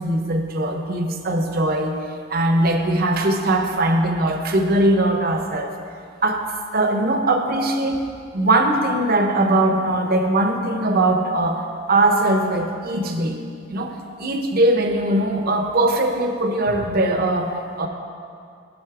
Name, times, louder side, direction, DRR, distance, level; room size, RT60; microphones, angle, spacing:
voice 1, 0.0-1.9 2.3-5.7 6.2-6.4 6.7-8.0 8.3-11.6 11.9-13.4 13.7-13.9 14.2-17.9, right 1 dB, 50° right, 5 dB, 0.7 m, -20 dB
10.5 x 5.4 x 4.7 m, 2.3 s
head